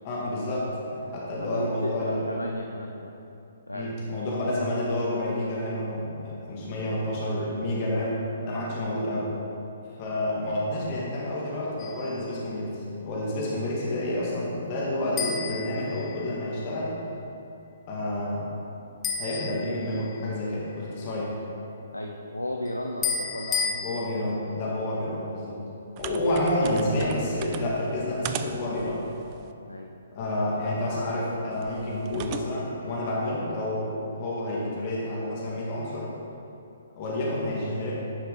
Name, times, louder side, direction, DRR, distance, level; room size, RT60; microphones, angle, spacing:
voice 1, 0.0-2.2 3.7-9.3 10.0-16.9 17.9-18.5 19.2-21.3 23.8-25.6 26.0-29.0 30.1-36.1 37.0-37.9, left 1 dB, 35° left, -6 dB, 1.6 m, -29 dB
voice 2, 1.4-3.1 3.7-3.9 8.4-8.6 21.9-23.8 29.7-29.9, left 1 dB, 80° left, 2 dB, 0.5 m, -34 dB
sound 1, 11.8-12.2 15.2-16.5 19.0-20.3 23.0-23.8, left 6 dB, 15° left, 0.7 m, -32 dB
sound 2, 26.0-29.5 31.5-32.4, right 8 dB, 30° right, 0.3 m, -38 dB
10.5 x 5.6 x 3.7 m, 2.7 s
figure-of-eight pair, 125°, 0 cm